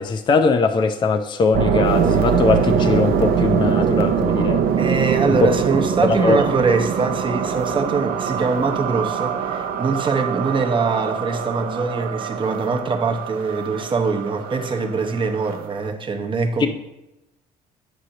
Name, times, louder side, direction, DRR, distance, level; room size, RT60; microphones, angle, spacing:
voice 1, 0.0-4.6 5.4-5.5 6.1-6.4 16.6-16.7, left 4 dB, 25° left, 0.4 m, -20 dB
sound 1, 1.5-15.8, right 7 dB, 60° right, 0.5 m, -23 dB
voice 2, 4.8-16.7, right 4 dB, 30° right, 0.8 m, -23 dB
8.8 x 6.3 x 2.9 m
cardioid pair, 110°, 17 cm